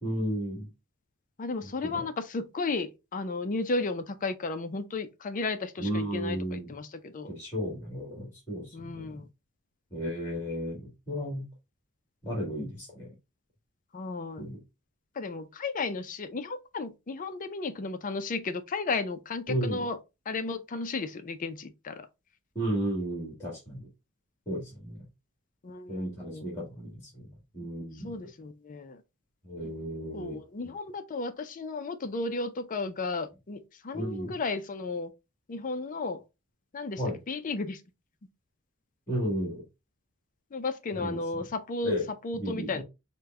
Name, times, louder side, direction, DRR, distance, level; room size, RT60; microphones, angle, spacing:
voice 1, 0.0-0.7 1.6-2.0 5.8-6.7 7.2-9.2 9.9-11.5 12.2-13.1 14.4-14.6 19.5-19.8 22.5-23.9 24.4-25.0 25.9-28.2 29.4-30.4 30.6-30.7 33.9-34.4 37.0-37.2 39.1-39.6 40.9-41.4 41.8-42.0 42.3-42.8, equal, 15° left, 1.9 m, -34 dB
voice 2, 1.4-7.3 8.7-9.3 13.9-14.5 15.2-20.0 20.3-21.9 25.6-26.5 28.0-29.0 29.6-29.7 30.1-35.1 35.5-36.2 36.7-37.0 37.3-37.8 40.5-42.0 42.2-42.8, left 3 dB, 40° left, 0.5 m, -34 dB
5.1 x 2.2 x 3.5 m
head